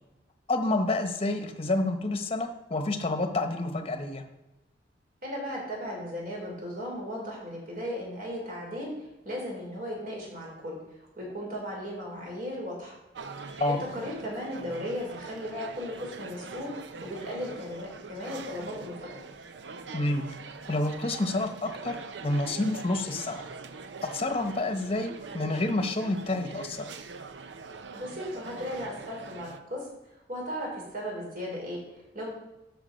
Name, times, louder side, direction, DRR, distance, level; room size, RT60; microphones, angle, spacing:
voice 1, 0.5-4.2 13.6-13.8 19.9-20.2 20.7-22.0 22.2-23.4 24.1-26.9, left 2 dB, 35° left, 6 dB, 1.0 m, -28 dB
voice 2, 5.2-10.8 11.2-13.6 13.9-16.7 17.0-19.2 27.9-29.9 30.3-31.8 32.1-32.3, equal, 50° right, -2 dB, 4.1 m, -36 dB
sound 1, 13.1-29.6, right 4 dB, 80° right, 0.7 m, -43 dB
12.5 x 5.1 x 5.2 m, 0.99 s
head